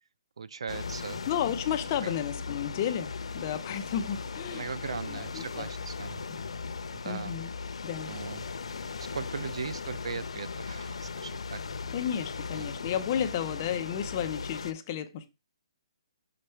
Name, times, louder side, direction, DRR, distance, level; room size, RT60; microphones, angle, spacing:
voice 1, 0.4-1.2 2.0-2.1 4.5-6.2 7.0-7.4 8.1-8.4 9.1-11.6 12.6-12.7, right 6 dB, 70° right, 0.4 m, -38 dB
sound 1, 0.7-14.7, left 5 dB, 90° left, 0.6 m, -38 dB
voice 2, 1.2-4.7 5.1-5.7 6.3-6.4 7.0-7.5 7.8-8.1 11.9-15.3, left 9 dB, 25° left, 0.6 m, -32 dB
6.4 x 5.8 x 3.3 m
hypercardioid pair, 170°, 3 cm